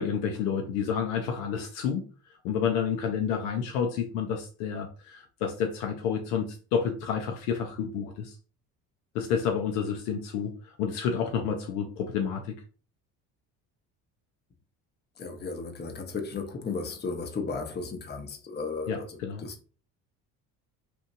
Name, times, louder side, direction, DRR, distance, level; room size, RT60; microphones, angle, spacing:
voice 1, 0.0-2.0 2.4-8.4 9.1-12.6 18.9-19.5, left 7 dB, 75° left, 0.6 m, -30 dB
voice 2, 15.2-19.7, left 4 dB, 20° left, 0.7 m, -35 dB
2.9 x 2.6 x 2.5 m
hypercardioid pair, 60°, 46 cm